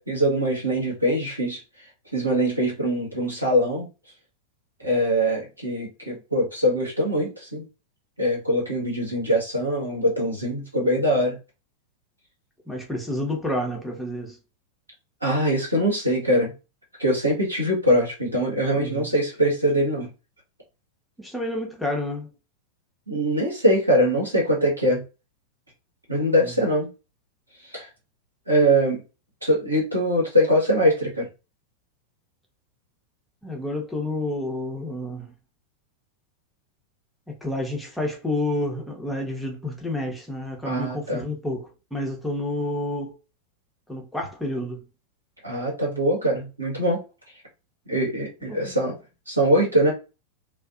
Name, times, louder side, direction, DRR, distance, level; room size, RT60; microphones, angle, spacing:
voice 1, 0.0-1.6 2.1-3.9 4.8-7.6 8.2-11.4 15.2-16.5 17.0-20.1 23.1-25.0 26.1-26.9 27.7-27.9 28.5-29.0 29.4-31.3 40.6-41.2 45.4-47.0 47.9-48.9 49.3-49.9, equal, 85° right, 1.2 m, -22 dB
voice 2, 12.7-14.4 18.7-19.1 21.2-22.3 26.4-26.6 33.4-35.3 37.3-43.2 43.9-44.9 48.5-49.0, left 1 dB, 5° left, 0.8 m, -30 dB
2.5 x 2.3 x 2.4 m
figure-of-eight pair, 90°, 0 cm